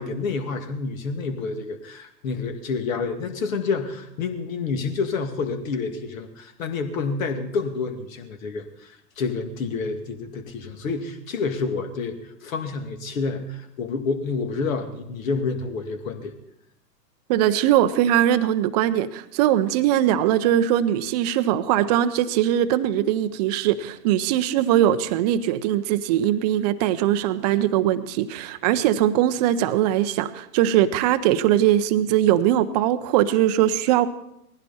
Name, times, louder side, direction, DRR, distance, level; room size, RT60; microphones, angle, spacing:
voice 1, 0.0-16.3, left 4 dB, 55° left, 7 dB, 2.4 m, -29 dB
voice 2, 17.3-34.1, right 12 dB, 25° right, 12 dB, 0.7 m, -21 dB
20.0 x 15.5 x 4.3 m, 0.80 s
hypercardioid pair, 125°, 49 cm